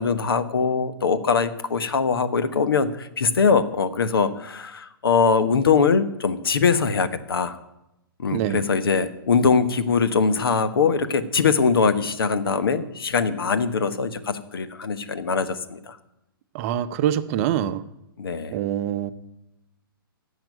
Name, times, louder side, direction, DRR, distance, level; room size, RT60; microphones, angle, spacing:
voice 1, 0.0-7.6 8.2-16.0 18.2-18.6, left 5 dB, 70° left, 1.1 m, -22 dB
voice 2, 8.3-8.6 16.5-17.8 18.5-19.1, right 11 dB, 35° right, 0.7 m, -24 dB
10.5 x 7.2 x 9.2 m
figure-of-eight pair, 120°, 12 cm